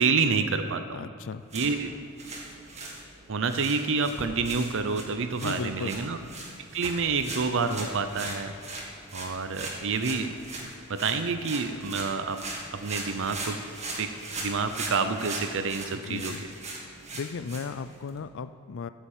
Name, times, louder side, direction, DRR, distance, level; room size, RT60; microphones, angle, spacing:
voice 1, 0.0-1.0 1.5-1.9 3.3-6.2 6.7-8.5 9.1-10.3 10.9-12.5 12.7-13.6 14.0-16.4, right 4 dB, 60° right, 9 dB, 0.7 m, -28 dB
voice 2, 0.9-1.4 5.4-5.9 15.9-16.4 17.1-18.9, left 5 dB, 60° left, 13 dB, 0.4 m, -36 dB
sound 1, 1.4-18.2, right 2 dB, 30° right, 1.9 m, -40 dB
14.0 x 7.1 x 7.3 m, 2.3 s
head